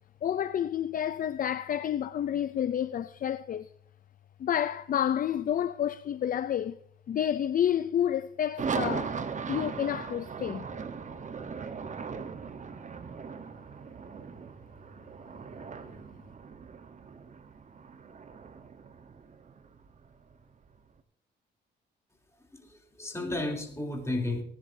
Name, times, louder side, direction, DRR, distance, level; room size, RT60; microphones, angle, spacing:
voice 1, 0.2-3.7 4.4-6.8 7.1-9.2 9.5-10.7, left 10 dB, 45° left, 0.5 m, -29 dB
sound 1, 8.6-20.8, right 5 dB, 40° right, 1.1 m, -38 dB
voice 2, 22.5-24.4, left 2 dB, 15° left, 3.1 m, -33 dB
19.5 x 10.5 x 2.7 m
cardioid pair, 90°, 20 cm